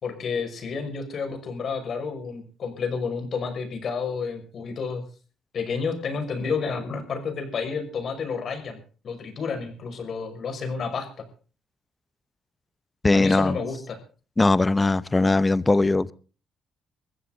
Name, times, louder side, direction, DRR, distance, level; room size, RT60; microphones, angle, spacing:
voice 1, 0.0-5.0 5.5-8.8 9.0-11.1 13.1-14.0, left 5 dB, 55° left, 5.9 m, -30 dB
voice 2, 13.0-13.6 14.4-16.1, left 2 dB, 20° left, 0.8 m, -20 dB
22.0 x 15.0 x 4.0 m
cardioid pair, 90°, 0 cm